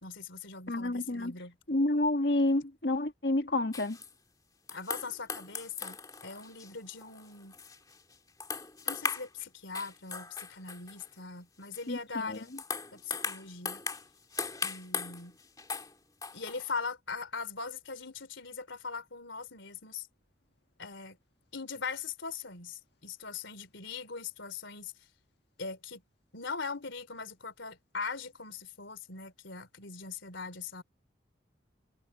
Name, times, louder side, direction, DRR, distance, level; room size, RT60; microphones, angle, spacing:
voice 1, 0.0-1.6 4.7-7.5 8.9-12.5 12.9-13.8 14.6-15.4 16.3-20.1 20.8-21.2 21.5-24.9 25.6-26.0 26.3-30.8, left 4 dB, 80° left, 3.4 m, -41 dB
voice 2, 0.7-1.3 1.7-4.0 11.9-12.0 12.3-12.4, left 2 dB, 60° left, 1.7 m, -29 dB
sound 1, 3.7-4.1 4.7-8.1 8.4-9.4 9.7-11.1 11.7-11.8 12.3-15.9 16.2-16.8, left 5 dB, 20° left, 2.7 m, -38 dB
head